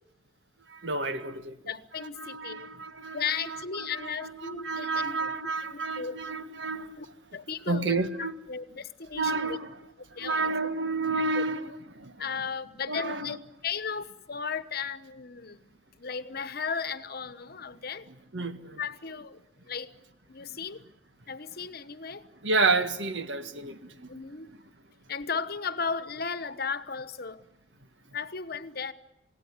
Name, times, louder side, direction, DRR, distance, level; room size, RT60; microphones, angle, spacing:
voice 1, 0.7-1.6 2.0-7.0 7.7-8.3 9.1-9.7 10.1-12.2 12.9-13.4 18.1-18.8 22.4-24.1, right 3 dB, 70° right, 1.7 m, -31 dB
voice 2, 1.7-2.7 3.1-5.3 5.7-6.2 7.0-7.1 7.3-9.6 10.2-10.5 11.3-11.4 12.2-15.7 16.0-18.1 18.8-19.4 19.7-19.9 20.3-20.8 21.3-22.3 24.1-24.5 25.1-27.4 28.1-28.9, left 6 dB, 55° left, 1.1 m, -35 dB
27.5 x 17.5 x 9.7 m
head